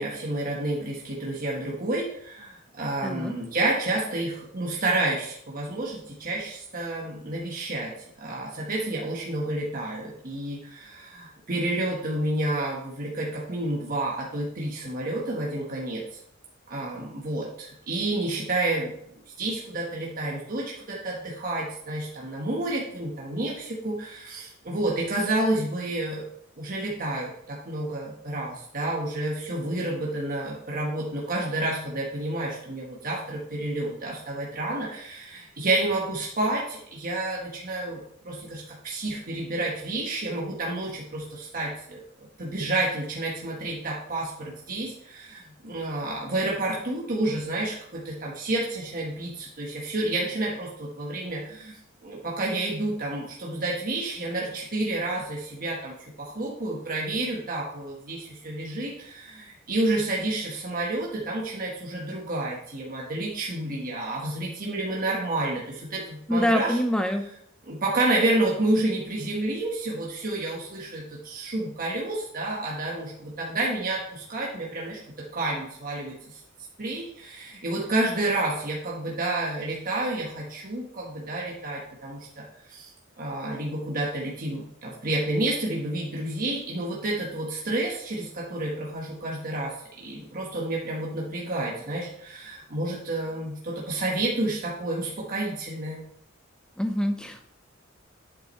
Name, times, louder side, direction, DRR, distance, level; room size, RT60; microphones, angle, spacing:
voice 1, 0.0-16.2 16.7-18.9 19.4-26.2 26.6-42.0 42.4-66.8 67.7-76.4 76.8-82.9 83.2-96.0, right 2 dB, 45° right, -3 dB, 1.4 m, -30 dB
voice 2, 3.0-3.3 66.3-67.2 96.8-97.5, equal, 5° left, 6 dB, 0.8 m, -25 dB
9.0 x 7.5 x 3.2 m, 0.69 s
head